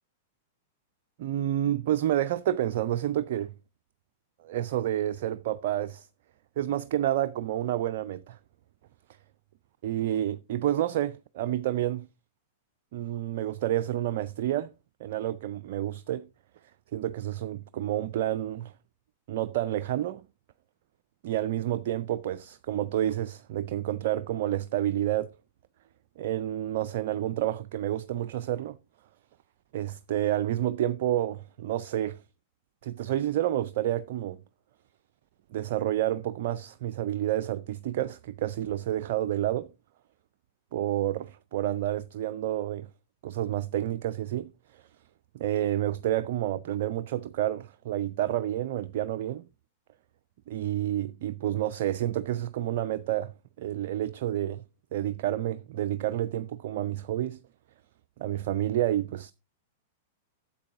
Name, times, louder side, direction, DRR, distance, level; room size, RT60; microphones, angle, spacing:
voice 1, 1.2-3.5 4.4-6.1 6.6-8.4 9.8-12.1 12.9-14.7 15.0-16.3 16.9-18.7 19.3-20.2 21.2-25.3 26.2-28.8 29.7-32.2 32.8-34.4 35.5-39.7 40.7-42.9 43.2-44.8 45.3-49.5 50.5-54.6 54.9-57.4 58.2-59.3, right 12 dB, 55° right, 0.4 m, -29 dB
9.6 x 7.4 x 3.6 m
figure-of-eight pair, 100°, 0 cm